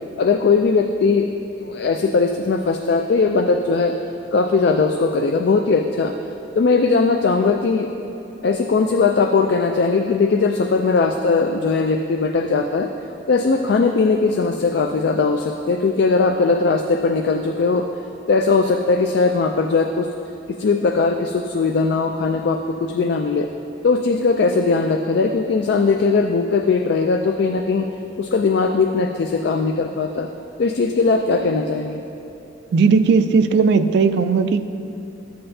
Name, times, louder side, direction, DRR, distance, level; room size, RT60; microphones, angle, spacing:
voice 1, 0.2-1.3 1.6-3.9 4.3-6.1 6.6-7.9 8.4-12.9 13.3-17.9 18.3-20.1 20.6-23.5 23.8-27.9 28.2-30.3 30.6-32.0, left 4 dB, 60° left, 5 dB, 0.4 m, -19 dB
voice 2, 32.7-34.7, right 5 dB, 60° right, 11 dB, 0.3 m, -16 dB
13.0 x 7.7 x 2.7 m, 3.0 s
head